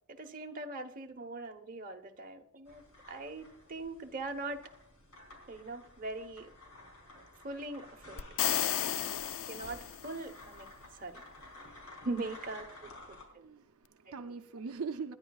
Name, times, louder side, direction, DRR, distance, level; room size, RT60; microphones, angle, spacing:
voice 1, 0.1-2.8 3.1-4.6 5.5-6.5 7.4-8.2 8.5-8.9 9.5-10.7 10.9-11.2 12.0-13.4 14.2-14.3, right 2 dB, 40° right, 3 dB, 1.1 m, -41 dB
sound 1, 2.7-13.2, left 2 dB, 80° left, 4.0 m, -53 dB
sound 2, 8.2-10.3, left 11 dB, 60° left, 0.4 m, -33 dB
voice 2, 13.2-15.1, right 5 dB, 70° right, 5 dB, 0.6 m, -41 dB
27.0 x 10.5 x 2.4 m, 0.73 s
head